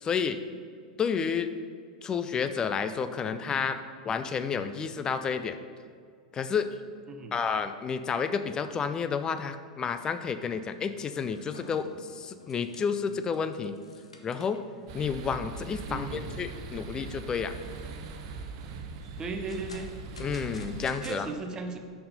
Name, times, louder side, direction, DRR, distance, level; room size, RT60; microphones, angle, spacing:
voice 1, 0.0-0.4 1.0-1.5 2.0-3.8 4.0-5.6 6.3-6.7 7.3-13.8 14.2-14.6 14.9-17.5 20.2-21.3, left 6 dB, 20° left, 10 dB, 0.4 m, -30 dB
sound 1, 10.5-10.7 11.0-14.8 15.2-15.3 15.8-15.9 16.3-16.8 17.3-18.0 19.0-21.2, left 2 dB, 80° left, 0.8 m, -50 dB
sound 2, 14.9-20.9, right 4 dB, 50° right, 0.8 m, -41 dB
voice 2, 15.9-16.3 19.2-19.9 21.0-21.8, right 3 dB, 20° right, 6 dB, 0.8 m, -36 dB
6.7 x 5.6 x 5.3 m, 2.1 s
figure-of-eight pair, 90°, 3 cm